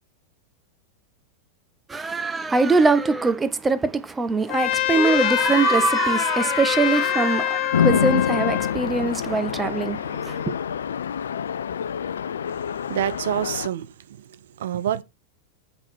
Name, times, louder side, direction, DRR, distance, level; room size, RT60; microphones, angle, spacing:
voice 1, 1.9-10.5, right 3 dB, 15° right, 0.9 m, -22 dB
Trumpet, 4.5-8.8, left 14 dB, 45° left, 0.8 m, -24 dB
Chatter / Traffic noise roadway noise / Train, 7.7-13.7, left 8 dB, 65° left, 0.4 m, -26 dB
voice 2, 12.5-15.0, right 11 dB, 60° right, 0.7 m, -28 dB
8.1 x 5.7 x 4.4 m
figure-of-eight pair, 90°, 0 cm